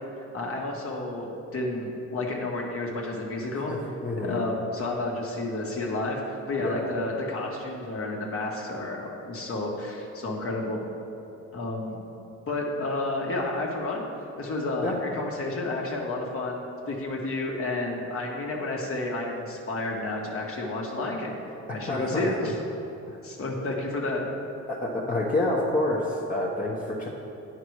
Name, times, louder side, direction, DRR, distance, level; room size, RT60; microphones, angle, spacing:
voice 1, 0.3-3.7 4.2-10.8 11.5-12.0 12.5-14.1 14.4-21.4 21.7-22.6 23.2-24.2, left 2 dB, 45° left, -1 dB, 1.6 m, -31 dB
voice 2, 3.7-4.5 6.6-6.8 14.8-15.0 21.9-22.5 23.1-23.2 24.7-27.1, left 1 dB, 25° left, -5 dB, 1.1 m, -28 dB
9.6 x 5.9 x 4.7 m, 2.9 s
cardioid pair, 90°, 30 cm